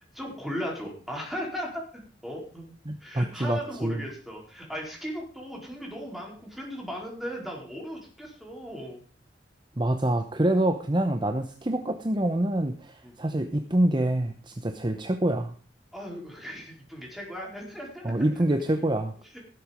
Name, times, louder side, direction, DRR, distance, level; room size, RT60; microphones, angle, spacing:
voice 1, 0.1-1.8 2.2-2.6 3.0-9.0 13.0-13.1 15.9-18.1 19.3-19.4, equal, ahead, -1 dB, 4.5 m, -37 dB
voice 2, 2.9-4.0 9.8-15.5 18.0-19.1, right 1 dB, 25° right, 7 dB, 0.8 m, -26 dB
17.0 x 7.9 x 5.2 m, 0.40 s
head